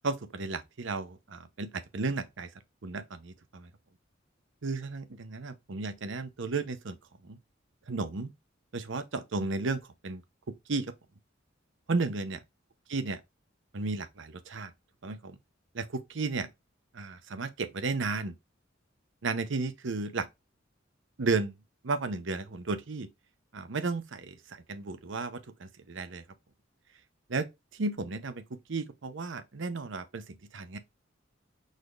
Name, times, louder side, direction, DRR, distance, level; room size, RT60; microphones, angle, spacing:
voice 1, 0.0-2.5 2.8-3.7 4.6-7.0 7.2-7.4 7.9-8.3 8.7-10.2 10.7-10.9 11.9-12.4 12.9-13.2 13.7-14.7 15.0-15.4 15.7-16.5 16.9-18.4 19.2-20.3 21.2-21.5 21.8-23.1 23.5-26.2 27.3-27.5 27.7-28.4 28.7-30.8, right 3 dB, 65° right, 0.7 m, -33 dB
5.0 x 4.1 x 2.4 m
head